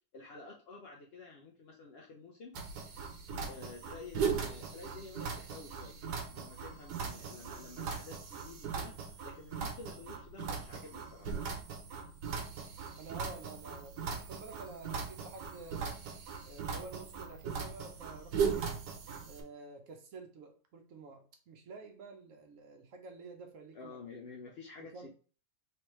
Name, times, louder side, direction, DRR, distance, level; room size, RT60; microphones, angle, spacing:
voice 1, 0.1-2.6 3.5-6.0 6.3-9.0 9.2-11.3 13.5-13.8 23.7-25.1, left 4 dB, 70° left, 0.6 m, -50 dB
sound 1, 2.5-19.4, right 6 dB, 85° right, 1.3 m, -39 dB
voice 2, 12.9-16.0 16.4-18.7 19.3-24.0 24.9-25.1, right 3 dB, 60° right, 1.0 m, -50 dB
3.2 x 3.2 x 3.0 m
omnidirectional pair, 1.7 m